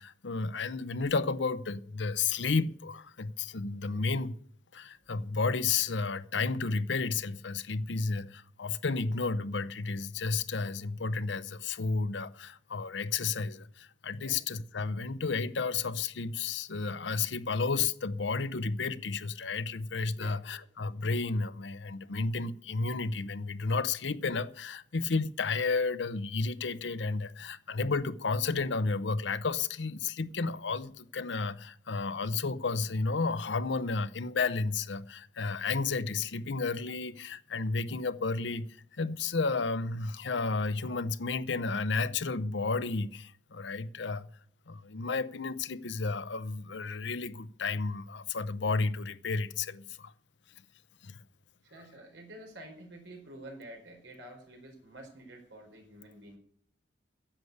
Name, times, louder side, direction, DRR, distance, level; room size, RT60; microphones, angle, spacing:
voice 1, 0.0-4.3 4.7-44.3 44.7-50.1 51.0-51.2, left 4 dB, 80° left, 0.8 m, -32 dB
voice 2, 20.2-20.6 51.6-56.4, right 1 dB, 80° right, 4.4 m, -49 dB
10.5 x 8.0 x 9.5 m
head